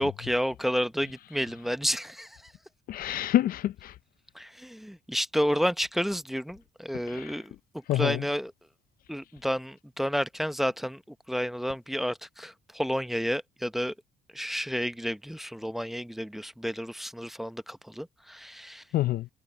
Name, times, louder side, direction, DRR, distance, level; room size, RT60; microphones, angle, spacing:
voice 1, 0.0-2.3 4.3-7.5 7.9-8.5 9.1-11.0 11.3-13.9 14.3-18.8, equal, ahead, 0.8 m, -30 dB
voice 2, 2.9-3.9 7.1-7.4 7.9-8.2 18.9-19.3, left 13 dB, 60° left, 0.5 m, -27 dB
cardioid pair, 110°, 17 cm